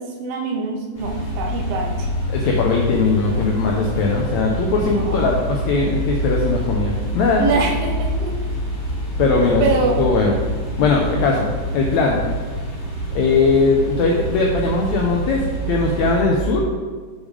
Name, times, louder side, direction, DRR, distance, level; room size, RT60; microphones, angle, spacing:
voice 1, 0.0-2.1 4.8-5.3 7.4-8.3 9.3-10.0, right 3 dB, 65° right, 1 dB, 1.6 m, -24 dB
sound 1, 1.0-16.2, equal, 40° left, 1.9 m, -26 dB
voice 2, 2.3-7.5 9.2-9.6 10.0-10.3 10.8-12.2 13.1-16.7, left 3 dB, 75° left, 0 dB, 1.7 m, -19 dB
7.2 x 5.1 x 4.8 m, 1.5 s
omnidirectional pair, 3.8 m